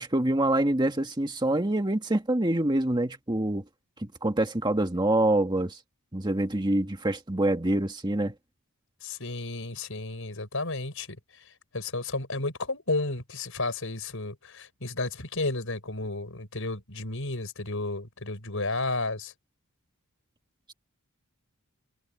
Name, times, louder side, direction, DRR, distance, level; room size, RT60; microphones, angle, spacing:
voice 1, 0.0-3.6 4.0-5.8 6.1-8.3, right 1 dB, 20° right, 1.7 m, -26 dB
voice 2, 9.0-11.2 11.7-19.3, left 2 dB, 65° left, 6.5 m, -32 dB
head